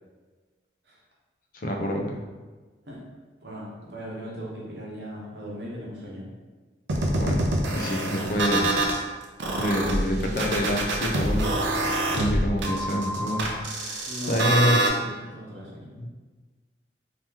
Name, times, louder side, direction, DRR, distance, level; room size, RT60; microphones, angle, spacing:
voice 1, 1.5-2.2 7.2-7.5 7.7-8.7 9.6-11.5 12.1-14.8 16.0-16.1, equal, 50° left, 2 dB, 0.4 m, -27 dB
voice 2, 3.4-6.2 14.1-16.1, equal, 60° right, -4 dB, 0.9 m, -38 dB
sound 1, 6.9-9.0 9.4-14.9, right 1 dB, 75° right, 0.5 m, -26 dB
2.9 x 2.8 x 3.6 m, 1.4 s
head